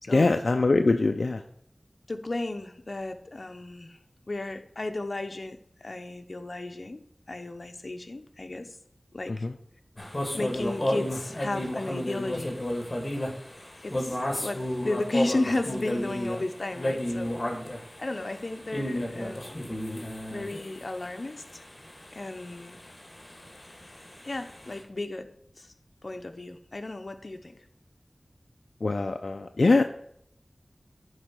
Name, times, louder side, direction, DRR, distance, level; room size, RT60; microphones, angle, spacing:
voice 1, 0.1-1.4 9.3-9.5 28.8-29.8, left 3 dB, 85° left, 5 dB, 0.4 m, -23 dB
voice 2, 2.1-4.0 4.3-8.8 9.1-9.5 10.3-12.6 13.8-17.4 18.0-19.7 20.3-21.6 22.1-22.8 24.2-25.7 26.0-27.6, left 2 dB, 60° left, 7 dB, 0.8 m, -34 dB
sound 1, 10.0-24.8, left 1 dB, 30° left, 1.9 m, -33 dB
10.0 x 4.0 x 6.0 m, 0.70 s
wide cardioid pair, 55°, 0 cm